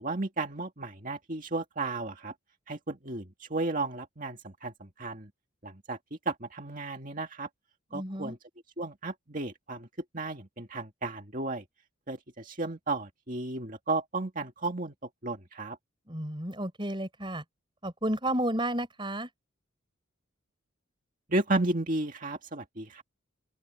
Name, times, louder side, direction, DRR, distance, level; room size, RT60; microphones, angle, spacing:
voice 1, 0.0-2.3 2.7-5.3 5.6-7.5 7.9-8.4 8.8-9.9 10.1-11.6 12.1-14.9 15.2-15.8 21.3-23.0, right 2 dB, 40° right, 2.1 m, -33 dB
voice 2, 7.9-8.4 16.1-17.4 17.8-19.3, right 1 dB, 25° right, 5.6 m, -32 dB
open air
head